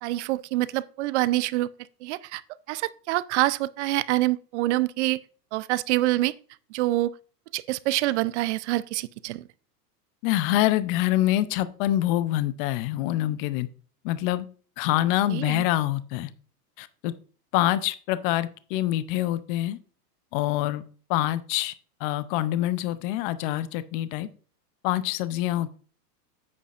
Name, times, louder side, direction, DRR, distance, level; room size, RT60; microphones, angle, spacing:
voice 1, 0.0-1.7 2.0-2.4 2.7-5.2 5.5-6.3 6.7-7.1 7.5-9.4 15.3-15.6, right 17 dB, 45° right, 0.5 m, -26 dB
voice 2, 10.2-13.7 14.0-14.4 14.8-16.3 16.8-17.1 17.5-19.8 20.3-20.8 21.1-21.7 22.0-24.3 24.8-25.8, left 14 dB, 35° left, 0.5 m, -25 dB
9.8 x 8.5 x 2.5 m
hypercardioid pair, 135°, 49 cm